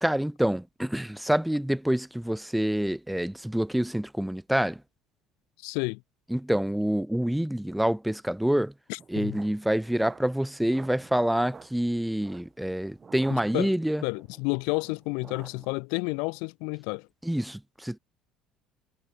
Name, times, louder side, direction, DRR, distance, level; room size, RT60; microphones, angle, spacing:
voice 1, 0.0-4.8 6.3-8.7 9.1-14.0 17.2-18.0, right 1 dB, 5° right, 0.7 m, -27 dB
voice 2, 5.6-6.0 8.9-9.4 13.3-13.7 14.0-17.1, left 34 dB, 80° left, 1.0 m, -31 dB
sound 1, 9.0-15.7, right 5 dB, 30° right, 3.0 m, -51 dB
supercardioid pair, 80°, 0 cm